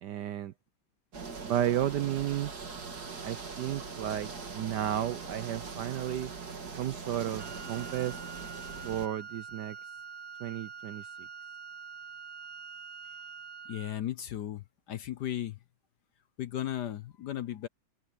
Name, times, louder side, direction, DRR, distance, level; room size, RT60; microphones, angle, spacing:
voice 1, 0.0-0.5 1.4-2.5 3.2-6.3 6.8-8.2 8.8-9.8 10.4-11.3, right 11 dB, 65° right, 1.1 m, -33 dB
sound 1, 1.1-9.1, right 4 dB, 50° right, 2.8 m, -41 dB
Wind instrument woodwind instrument, 7.4-14.0, right 6 dB, 10° right, 2.1 m, -45 dB
voice 2, 13.7-15.6 16.4-17.7, left 11 dB, 60° left, 1.2 m, -36 dB
omnidirectional pair, 2.3 m